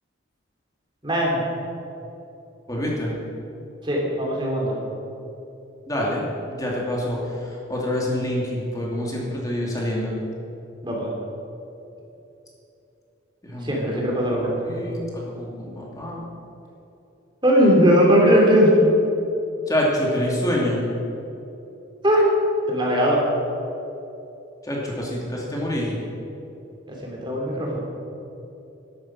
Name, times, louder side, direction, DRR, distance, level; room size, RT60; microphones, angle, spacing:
voice 1, 1.0-1.4 3.8-4.7 10.8-11.1 13.6-14.6 17.4-18.7 22.0-22.2 22.7-23.2 26.9-27.8, equal, 25° right, -2 dB, 3.3 m, -19 dB
voice 2, 2.7-3.1 5.9-7.2 7.7-10.1 13.5-14.0 14.6-16.2 19.7-20.8 24.7-26.0, left 1 dB, 15° left, -3 dB, 2.6 m, -26 dB
12.5 x 12.5 x 6.1 m, 2.9 s
head